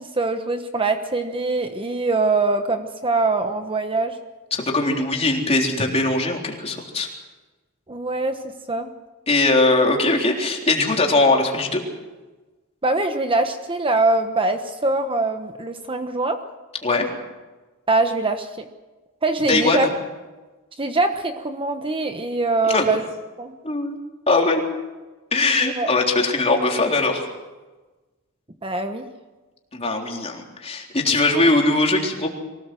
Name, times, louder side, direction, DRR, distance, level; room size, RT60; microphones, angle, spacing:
voice 1, 0.0-4.1 7.9-8.4 8.7-8.9 12.8-16.4 17.9-18.5 19.2-19.9 20.8-23.0 23.4-23.5 25.6-25.9 28.6-29.1 31.4-31.5, right 3 dB, 25° right, 7 dB, 1.2 m, -23 dB
voice 2, 4.5-7.1 9.3-11.8 16.8-17.1 19.5-19.9 22.7-22.9 23.6-24.0 24.3-24.6 25.3-27.3 29.7-32.3, left 2 dB, 30° left, 1 dB, 3.7 m, -20 dB
24.0 x 18.5 x 7.7 m, 1.2 s
head